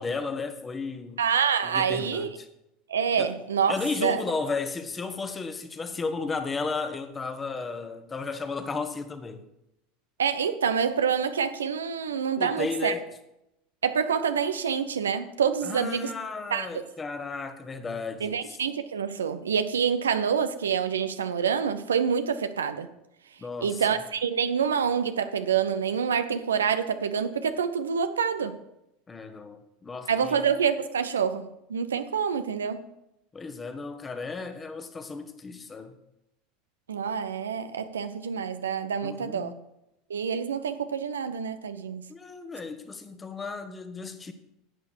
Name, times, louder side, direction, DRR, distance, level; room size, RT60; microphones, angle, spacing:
voice 1, 0.0-1.2 1.6-2.5 3.2-3.3 3.7-9.4 12.4-13.1 15.6-18.6 23.4-24.0 29.1-30.4 33.3-36.0 39.0-39.6 42.1-44.3, left 4 dB, 20° left, 1.3 m, -34 dB
voice 2, 1.2-2.3 2.9-4.2 10.2-12.9 13.8-16.1 16.5-16.8 18.2-22.9 23.6-28.6 30.1-32.8 36.9-39.5 40.1-42.0, right 7 dB, 80° right, 0.7 m, -27 dB
11.0 x 8.5 x 4.6 m
figure-of-eight pair, 75°, 0 cm